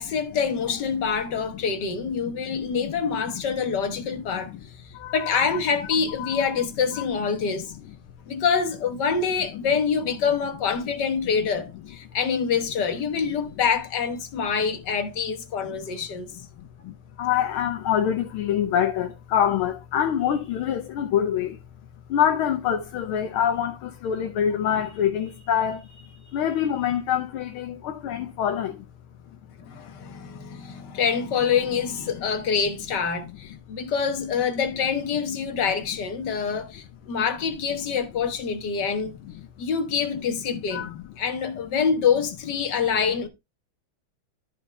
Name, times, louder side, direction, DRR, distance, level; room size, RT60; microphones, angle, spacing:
voice 1, 0.0-4.5 5.1-7.7 8.3-16.3 29.6-39.2 39.6-40.9 41.2-43.3, left 6 dB, 60° left, 1.8 m, -26 dB
voice 2, 2.5-3.4 4.1-4.6 4.9-5.3 6.2-6.5 7.4-7.6 8.3-8.4 9.5-9.6 14.6-14.7 15.7-15.8 16.6-28.9 29.8-29.9 30.3-30.9 32.1-32.3 33.8-33.9 35.5-35.6 40.5-41.0, left 9 dB, 85° left, 1.7 m, -26 dB
12.5 x 5.3 x 3.3 m
omnidirectional pair, 2.3 m